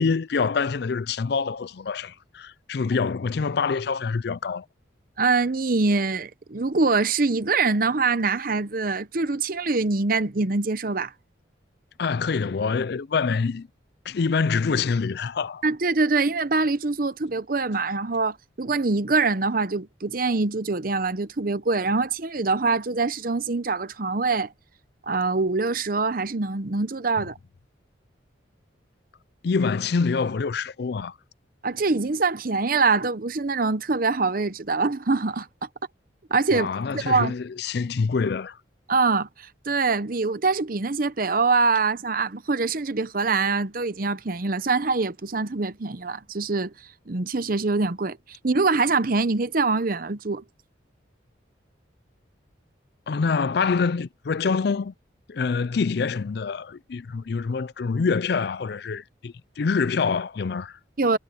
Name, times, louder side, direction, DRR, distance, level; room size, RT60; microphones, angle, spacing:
voice 1, 0.0-4.6 12.0-13.7 14.1-15.6 29.4-31.1 36.5-38.6 53.1-54.9 55.3-60.8, left 5 dB, 55° left, 0.4 m, -25 dB
voice 2, 5.2-11.1 15.6-24.5 25.1-27.4 31.6-35.5 36.3-36.7 36.9-37.3 38.9-46.7 47.1-50.4 61.0-61.2, right 3 dB, 45° right, 0.8 m, -24 dB
head